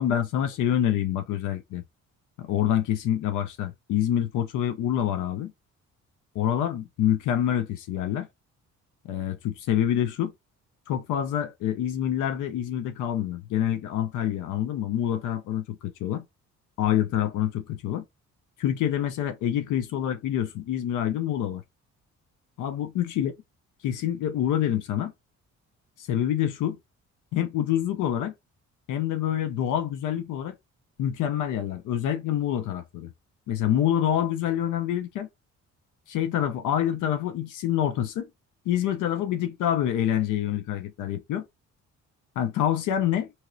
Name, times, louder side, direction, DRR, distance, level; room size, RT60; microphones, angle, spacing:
voice 1, 0.0-1.8 2.4-5.5 6.3-8.3 9.0-10.3 10.9-16.2 16.8-18.0 18.6-21.6 22.6-23.3 23.8-25.1 26.0-26.8 27.3-28.3 28.9-30.6 31.0-33.1 33.5-35.3 36.1-38.3 38.7-41.5 42.4-43.3, left 10 dB, 85° left, 0.6 m, -26 dB
2.9 x 2.8 x 2.6 m
cardioid pair, 90°, 30 cm